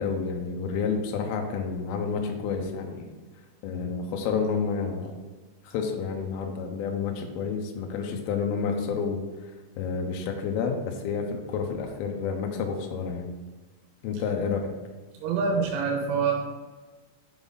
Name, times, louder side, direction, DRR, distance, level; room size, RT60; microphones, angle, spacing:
voice 1, 0.0-3.1 3.6-5.2 5.6-13.3 14.0-14.7, left 5 dB, 85° left, 3 dB, 2.1 m, -30 dB
voice 2, 15.2-16.3, right 5 dB, 90° right, 0 dB, 3.5 m, -26 dB
7.2 x 5.3 x 4.0 m, 1.3 s
omnidirectional pair, 5.5 m